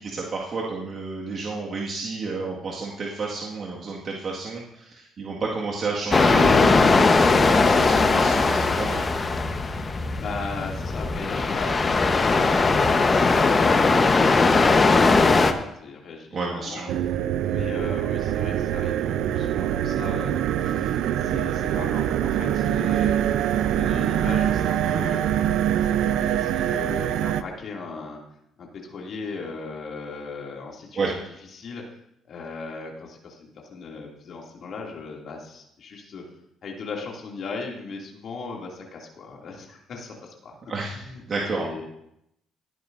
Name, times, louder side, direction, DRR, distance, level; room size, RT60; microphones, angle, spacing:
voice 1, 0.0-9.2 16.3-17.0 30.9-31.1 40.7-40.9 41.3-41.7, right 4 dB, 50° right, -3 dB, 1.9 m, -30 dB
sound 1, 6.1-15.5, left 3 dB, 35° left, 1.1 m, -19 dB
voice 2, 9.6-16.8 17.4-23.2 23.6-25.2 25.8-28.2 28.6-31.1 31.5-31.8 32.3-36.2 36.6-40.5 40.8-41.2 41.5-41.9, left 4 dB, 60° left, -1 dB, 2.6 m, -38 dB
sound 2, 16.9-27.4, right 11 dB, 75° right, 0.5 m, -24 dB
17.5 x 9.3 x 2.7 m, 0.78 s
supercardioid pair, 65°, 0 cm